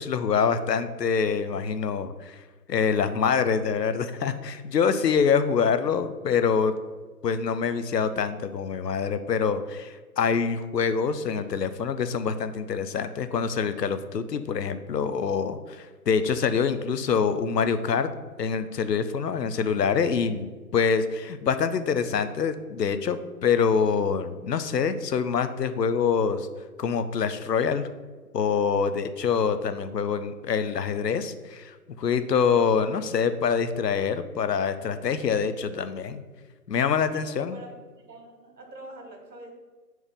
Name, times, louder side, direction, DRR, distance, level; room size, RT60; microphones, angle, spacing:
voice 1, 0.0-2.4 2.7-6.8 7.2-18.1 18.4-26.5 26.8-27.9 28.3-36.2 36.7-37.6, left 6 dB, 80° left, 11 dB, 0.7 m, -25 dB
voice 2, 32.7-33.1 37.1-37.7 38.1-39.5, right 1 dB, 85° right, 1 dB, 2.2 m, -45 dB
5.6 x 4.7 x 5.1 m, 1.4 s
hypercardioid pair, 170°, 49 cm